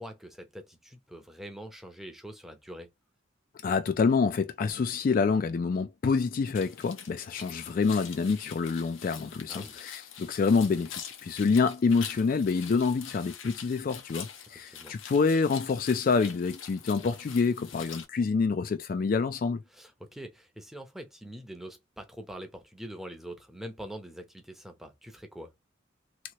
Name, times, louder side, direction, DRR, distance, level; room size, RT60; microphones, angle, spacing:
voice 1, 0.0-2.9 9.5-9.8 14.7-14.9 19.7-25.5, equal, ahead, 0.6 m, -44 dB
voice 2, 3.6-19.6, left 4 dB, 45° left, 0.3 m, -27 dB
sound 1, 6.5-18.0, left 8 dB, 85° left, 0.8 m, -45 dB
3.0 x 2.8 x 2.7 m
head